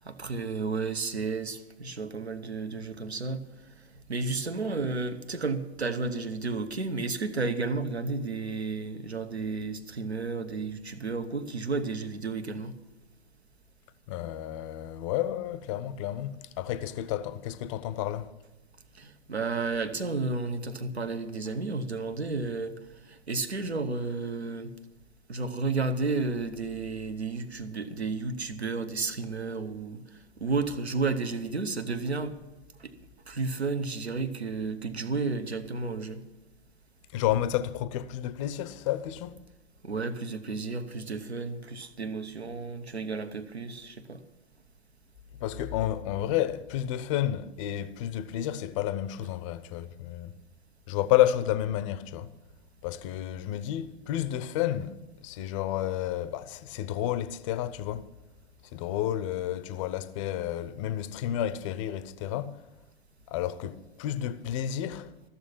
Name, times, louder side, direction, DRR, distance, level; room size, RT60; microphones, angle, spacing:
voice 1, 0.0-3.4 4.0-12.7 18.9-22.7 23.1-24.7 25.3-30.0 30.4-32.3 32.8-32.9 33.3-36.2 39.8-44.2, right 4 dB, 80° right, 1.2 m, -32 dB
voice 2, 14.1-18.3 37.1-39.4 45.4-50.3 50.9-52.3 52.8-58.1 58.7-62.6 63.3-65.1, left 12 dB, 30° left, 0.6 m, -31 dB
14.5 x 6.9 x 8.6 m
figure-of-eight pair, 110°, 32 cm